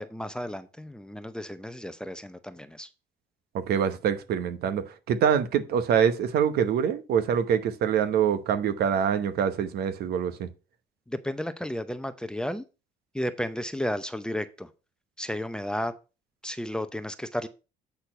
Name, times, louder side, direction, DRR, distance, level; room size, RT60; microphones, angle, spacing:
voice 1, 0.0-2.9 11.1-12.6 13.1-14.7 15.2-15.9 16.4-17.5, equal, 5° left, 0.7 m, -33 dB
voice 2, 3.5-10.5, right 8 dB, 70° right, 1.0 m, -25 dB
8.3 x 4.4 x 5.5 m
cardioid pair, 110°, 17 cm